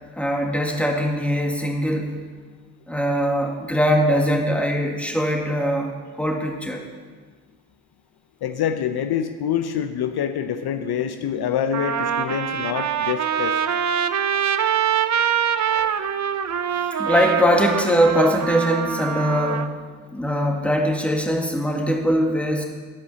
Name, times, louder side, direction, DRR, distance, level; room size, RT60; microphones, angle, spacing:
voice 1, 0.1-2.2 2.9-5.9 6.2-6.9 15.0-15.2 15.7-15.9 17.0-19.8 20.1-22.6, equal, 5° left, 1 dB, 2.0 m, -21 dB
voice 2, 8.4-13.6, left 9 dB, 70° left, 9 dB, 0.6 m, -26 dB
Trumpet, 11.0-11.1 11.7-19.7, right 8 dB, 45° right, 0.7 m, -24 dB
12.0 x 5.5 x 6.8 m, 1.5 s
supercardioid pair, 50°, 40 cm